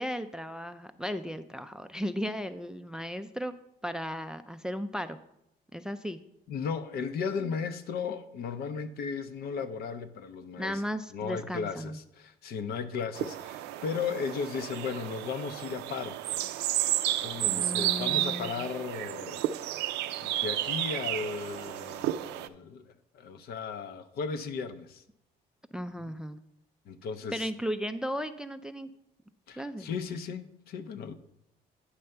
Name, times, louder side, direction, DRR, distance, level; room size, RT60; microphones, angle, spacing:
voice 1, 0.0-3.5 3.8-5.2 5.7-6.2 10.6-12.0 17.5-18.7 25.7-26.4 27.3-28.9 29.6-29.9, equal, 5° right, 11 dB, 0.3 m, -35 dB
voice 2, 6.5-10.8 11.1-16.2 16.9-19.4 19.8-25.0 26.9-27.5 29.5-31.2, left 6 dB, 65° left, 10 dB, 0.6 m, -36 dB
sound 1, 13.1-22.5, right 14 dB, 85° right, 0.4 m, -32 dB
9.6 x 3.3 x 6.6 m, 0.81 s
cardioid pair, 110°, 17 cm